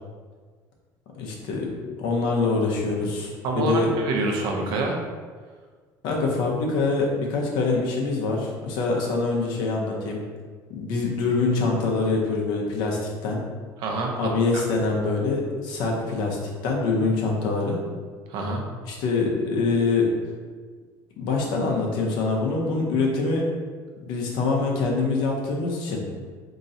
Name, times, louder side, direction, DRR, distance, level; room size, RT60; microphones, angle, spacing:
voice 1, 1.2-1.7 2.0-3.9 6.0-10.2 10.7-13.4 14.2-16.4 16.6-17.8 18.8-20.1 21.2-23.4 24.0-26.0, left 3 dB, 75° left, -1 dB, 0.8 m, -24 dB
voice 2, 3.4-5.0 13.8-14.1 18.3-18.6, right 2 dB, 65° right, 0 dB, 0.7 m, -26 dB
3.8 x 2.9 x 2.7 m, 1.5 s
cardioid pair, 120°, 8 cm